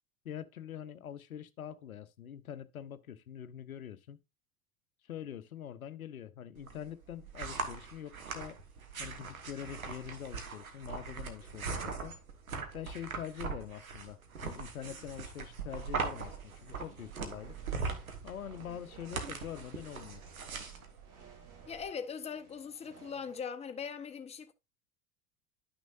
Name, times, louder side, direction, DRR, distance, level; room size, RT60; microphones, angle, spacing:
voice 1, 0.2-4.2 5.0-8.6 9.0-12.1 12.7-17.5 18.2-20.2, left 9 dB, 80° left, 0.6 m, -44 dB
sound 1, 6.6-21.9, right 5 dB, 75° right, 1.3 m, -41 dB
sound 2, 15.7-23.4, right 6 dB, 45° right, 2.7 m, -59 dB
voice 2, 21.7-24.5, left 6 dB, 15° left, 0.7 m, -40 dB
11.0 x 6.1 x 2.5 m
figure-of-eight pair, 75°, 42 cm